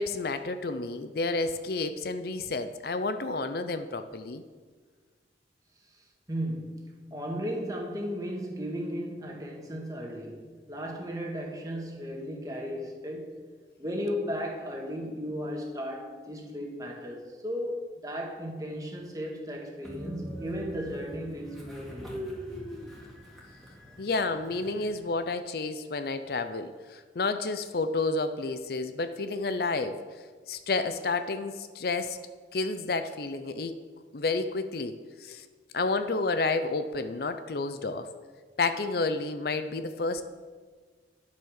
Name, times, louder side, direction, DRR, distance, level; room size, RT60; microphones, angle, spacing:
voice 1, 0.0-4.4 24.0-30.0 30.5-32.2 32.5-33.8 34.1-35.4 35.7-38.1 38.6-40.2, left 3 dB, 55° left, 10 dB, 0.6 m, -30 dB
voice 2, 5.9-13.4 13.8-22.4, equal, 20° right, 0 dB, 1.7 m, -35 dB
Train, 19.8-25.1, equal, ahead, 2.3 m, -42 dB
10.5 x 8.3 x 6.4 m, 1.5 s
head